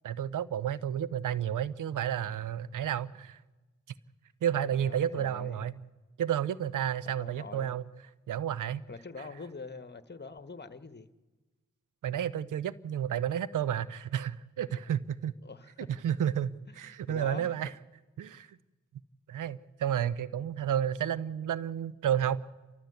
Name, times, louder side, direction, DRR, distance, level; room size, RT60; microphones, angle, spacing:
voice 1, 0.0-3.4 4.4-5.7 6.2-7.8 8.3-8.8 12.0-15.3 15.8-17.7 18.2-18.5 19.3-22.4, right 9 dB, 85° right, 0.7 m, -31 dB
voice 2, 4.8-5.7 7.0-7.7 8.9-11.1 14.7-14.8 15.4-15.9 16.7-17.5, left 4 dB, 35° left, 1.5 m, -45 dB
29.0 x 13.5 x 8.2 m
supercardioid pair, 40°, 30 cm